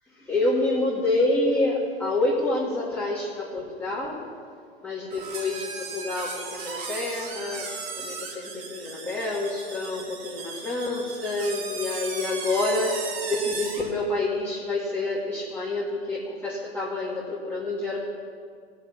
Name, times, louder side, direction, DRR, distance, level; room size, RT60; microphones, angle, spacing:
voice 1, 0.1-4.2 4.8-7.7 7.9-18.0, left 2 dB, 5° left, -8 dB, 2.4 m, -27 dB
sound 1, 5.1-13.9, right 4 dB, 50° right, 2.2 m, -36 dB
17.0 x 6.5 x 7.2 m, 2.1 s
hypercardioid pair, 105°, 31 cm